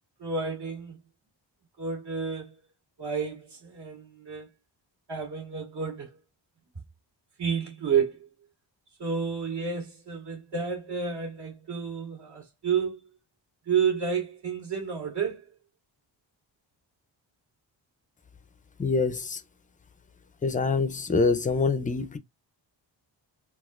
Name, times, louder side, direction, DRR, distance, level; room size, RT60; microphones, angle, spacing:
voice 1, 0.2-1.0 1.8-2.6 3.0-4.5 5.1-6.2 7.4-8.3 9.0-13.1 13.7-15.5, right 6 dB, 65° right, 2.0 m, -30 dB
voice 2, 18.8-19.4 20.4-22.2, left 4 dB, 20° left, 0.4 m, -25 dB
4.1 x 2.3 x 2.3 m
wide cardioid pair, 135°, 44 cm